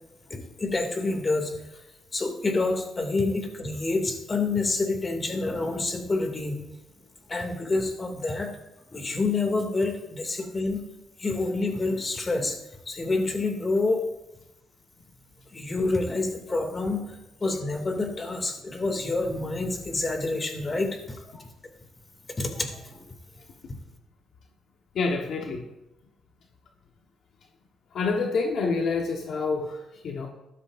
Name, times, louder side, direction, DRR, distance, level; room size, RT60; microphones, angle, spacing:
voice 1, 0.3-1.6 2.1-6.6 7.3-8.5 8.9-10.8 11.2-12.6 12.9-14.0 15.5-17.0 17.4-21.4 22.4-23.1, left 3 dB, 30° left, 4 dB, 2.4 m, -28 dB
voice 2, 24.9-25.7 27.9-30.3, left 4 dB, 65° left, 2 dB, 1.2 m, -27 dB
13.5 x 12.5 x 2.6 m, 0.93 s
cardioid pair, 90°, 0 cm